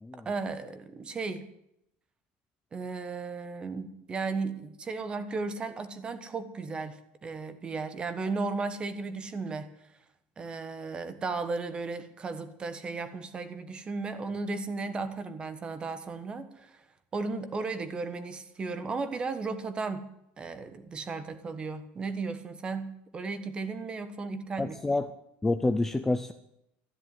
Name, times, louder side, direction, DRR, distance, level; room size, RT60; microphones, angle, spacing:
voice 1, 0.2-1.5 2.7-9.7 10.4-16.8 17.1-20.1 20.4-24.8, right 4 dB, 20° right, 11 dB, 1.3 m, -35 dB
voice 2, 24.6-25.1 25.4-26.3, left 2 dB, 10° left, 8 dB, 0.5 m, -28 dB
13.5 x 11.0 x 9.4 m, 0.80 s
cardioid pair, 155°, 5 cm